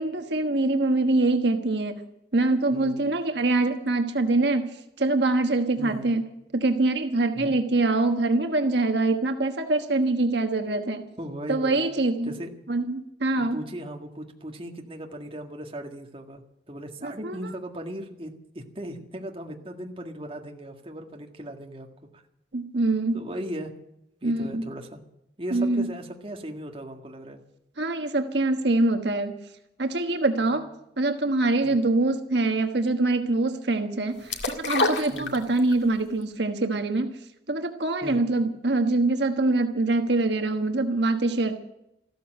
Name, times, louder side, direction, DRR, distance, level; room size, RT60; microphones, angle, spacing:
voice 1, 0.0-2.0 2.3-6.2 6.5-11.0 11.5-12.3 12.7-13.6 17.0-17.4 22.5-23.2 24.2-24.6 25.5-25.9 27.8-29.3 29.8-30.7 31.0-37.1 37.5-41.6, right 2 dB, 75° right, 6 dB, 1.3 m, -24 dB
voice 2, 2.7-3.1 5.8-6.1 7.4-7.5 11.2-11.7 12.3-12.5 13.5-21.9 23.1-23.7 24.2-25.0 25.4-27.4 30.4-30.5 31.6-31.8 35.1-35.4 38.0-38.3, right 1 dB, 30° right, 2 dB, 1.8 m, -37 dB
sound 1, 34.3-35.8 36.2-36.3, left 2 dB, 80° left, 2.0 m, -26 dB
14.5 x 13.0 x 7.7 m, 0.83 s
head